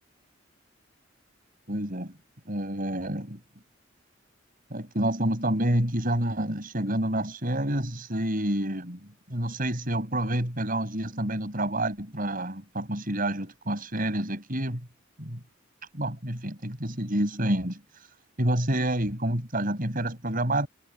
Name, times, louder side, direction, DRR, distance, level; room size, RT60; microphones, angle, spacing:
voice 1, 1.7-2.2 2.4-3.4 4.7-14.8 15.2-15.4 15.9-17.8 18.4-20.7, right 1 dB, 45° right, 6.6 m, -28 dB
head